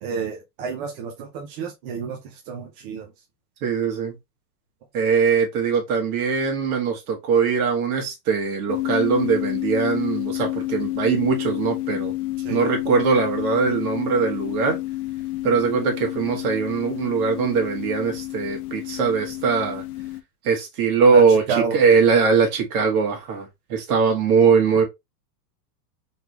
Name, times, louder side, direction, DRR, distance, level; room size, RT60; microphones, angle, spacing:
voice 1, 0.0-3.1 12.4-12.6 21.1-21.8, right 6 dB, 35° right, 0.8 m, -30 dB
voice 2, 3.6-4.2 4.9-12.1 12.5-14.8 15.4-19.8 20.4-24.8, right 5 dB, 60° right, 1.9 m, -21 dB
sound 1, 8.7-20.2, left 17 dB, 70° left, 0.8 m, -29 dB
4.1 x 3.5 x 2.9 m
supercardioid pair, 170°, 48 cm